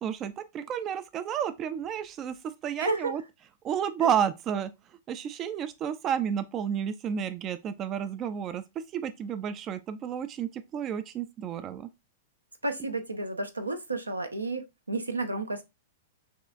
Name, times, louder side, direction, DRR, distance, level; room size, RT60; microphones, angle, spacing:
voice 1, 0.0-2.4 2.6-3.2 3.6-4.7 5.1-8.6 8.9-11.9, right 8 dB, 30° right, 0.3 m, -31 dB
voice 2, 2.8-3.1 12.6-15.6, right 2 dB, 85° right, 0.6 m, -31 dB
6.1 x 2.4 x 2.4 m
figure-of-eight pair, 100°, 0 cm